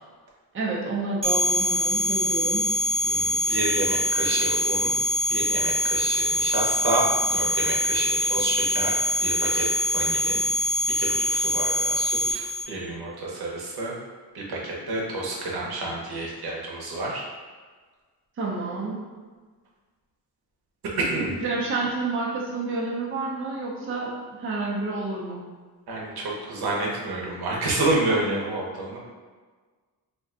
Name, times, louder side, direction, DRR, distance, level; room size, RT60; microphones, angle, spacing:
voice 1, 0.5-2.7 18.4-19.0 21.4-25.4, right 3 dB, 35° right, -5 dB, 0.6 m, -29 dB
sound 1, 1.2-12.6, left 1 dB, 15° right, 1.0 m, -24 dB
voice 2, 3.0-4.9 5.3-8.9 9.2-10.4 11.0-14.0 14.3-17.2 21.1-21.4 25.9-29.0, right 2 dB, 75° right, -3 dB, 0.9 m, -29 dB
2.6 x 2.2 x 3.7 m, 1.4 s
cardioid pair, 110°, 39 cm